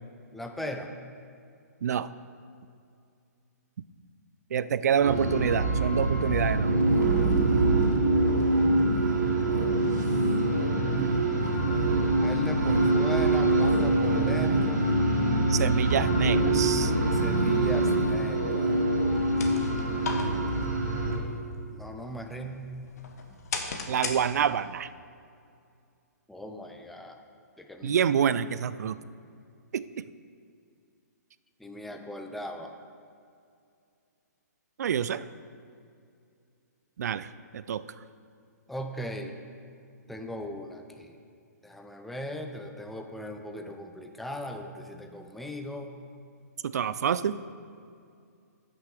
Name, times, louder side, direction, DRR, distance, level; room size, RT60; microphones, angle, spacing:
voice 1, 0.3-0.9 12.1-14.9 17.0-18.8 21.7-22.7 26.3-27.2 27.6-28.1 28.5-28.6 31.6-32.7 38.7-39.3 40.1-41.2 41.6-45.9, equal, ahead, 4 dB, 0.5 m, -38 dB
voice 2, 4.5-6.8 15.5-16.9 23.9-24.9 27.8-29.0 29.7-30.0 34.8-35.2 37.0-37.8 46.6-47.4, right 8 dB, 65° right, 15 dB, 0.4 m, -27 dB
sound 1, 5.0-21.2, right 2 dB, 90° right, 2.5 m, -24 dB
sound 2, 19.0-24.8, left 4 dB, 65° left, 1.3 m, -39 dB
12.0 x 6.2 x 4.9 m, 2.4 s
hypercardioid pair, 150°, 9 cm